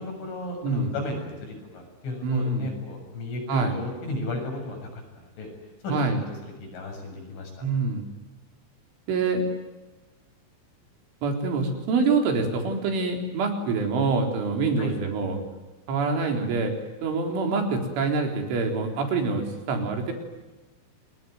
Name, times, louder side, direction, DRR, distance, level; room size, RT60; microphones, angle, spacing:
voice 1, 0.0-5.5 5.8-7.7 14.8-14.9, left 1 dB, 80° left, 3 dB, 9.7 m, -34 dB
voice 2, 0.6-0.9 2.2-2.7 3.5-3.7 5.9-6.2 7.6-8.1 9.1-9.4 11.2-15.4 15.9-16.7 17.0-20.1, right 4 dB, 80° right, 3 dB, 6.3 m, -25 dB
28.0 x 22.0 x 9.4 m, 1.2 s
omnidirectional pair, 5.5 m